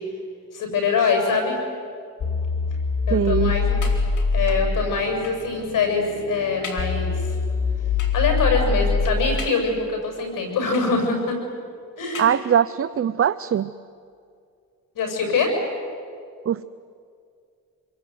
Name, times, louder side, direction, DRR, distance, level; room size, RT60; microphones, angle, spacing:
voice 1, 0.5-1.6 3.1-3.8 4.3-7.3 8.1-11.4 12.0-12.3 14.9-15.5, left 4 dB, 80° left, 3 dB, 7.4 m, -23 dB
sound 1, 2.2-9.5, left 4 dB, 45° left, 1.3 m, -24 dB
voice 2, 3.1-3.6 12.2-13.7 16.5-16.6, right 9 dB, 45° right, 14 dB, 0.6 m, -21 dB
sound 2, 3.8-4.5 5.2-5.6 6.1-6.2 6.6-7.0 8.0-8.3 9.4-10.0 10.7-11.3 12.1-12.8 13.6-13.7 14.1-14.2, left 4 dB, 65° left, 4.7 m, -39 dB
26.5 x 22.5 x 9.5 m, 2.3 s
cardioid pair, 85°, 32 cm